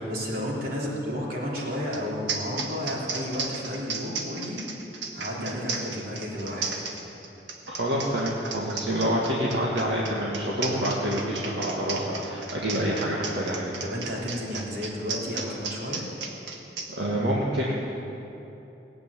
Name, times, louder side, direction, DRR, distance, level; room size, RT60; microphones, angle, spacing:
voice 1, 0.1-4.6 5.1-6.8 13.8-16.0, equal, 55° right, -4 dB, 3.6 m, -32 dB
sound 1, 1.9-2.0 2.3-16.9, right 5 dB, 85° right, 1.7 m, -34 dB
voice 2, 7.7-13.8 16.9-17.7, equal, 70° right, -5 dB, 2.0 m, -27 dB
18.5 x 8.6 x 8.6 m, 3.0 s
head